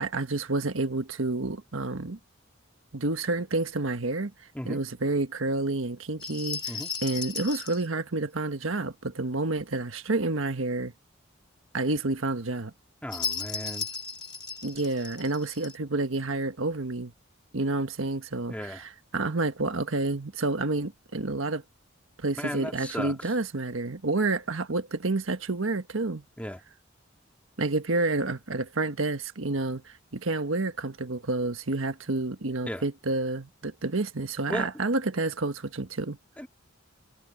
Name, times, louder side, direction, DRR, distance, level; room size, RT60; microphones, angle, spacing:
voice 1, 0.0-2.2 2.9-4.3 4.6-10.9 11.7-12.7 14.6-17.1 17.5-21.6 22.2-26.2 27.6-36.2, right 2 dB, 90° right, 1.4 m, -29 dB
sound 1, 6.2-7.8 13.1-15.7, left 5 dB, 25° left, 2.5 m, -35 dB
voice 2, 13.0-13.9 18.5-18.8 22.4-23.3 26.4-26.6 32.7-32.8 34.5-34.7 36.4-36.5, equal, 5° left, 2.1 m, -35 dB
head